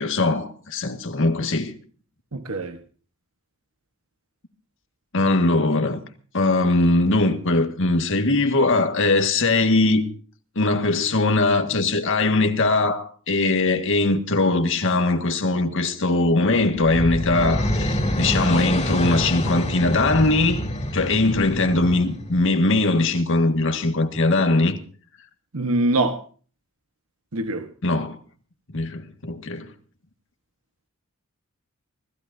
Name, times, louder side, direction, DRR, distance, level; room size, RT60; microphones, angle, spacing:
voice 1, 0.0-1.7 5.1-6.0 6.3-10.1 10.6-20.6 20.9-24.8 27.8-28.2 28.7-29.7, left 2 dB, 60° left, 1.9 m, -21 dB
voice 2, 2.3-2.8 25.5-26.2 27.3-27.7, right 2 dB, 70° right, 1.3 m, -23 dB
sound 1, 16.5-22.5, left 1 dB, 30° left, 3.1 m, -27 dB
25.0 x 16.0 x 2.7 m
head